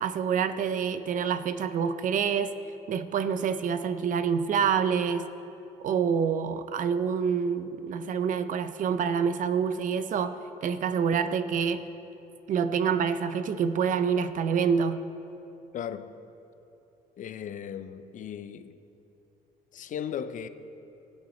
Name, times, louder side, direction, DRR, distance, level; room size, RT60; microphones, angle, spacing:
voice 1, 0.0-2.5 2.9-5.3 5.8-11.8 12.5-15.0, right 7 dB, 50° right, 0.6 m, -27 dB
voice 2, 15.7-16.1 17.2-18.8 19.7-20.5, left 8 dB, 50° left, 0.5 m, -36 dB
16.5 x 8.0 x 4.2 m
cardioid pair, 110°, 17 cm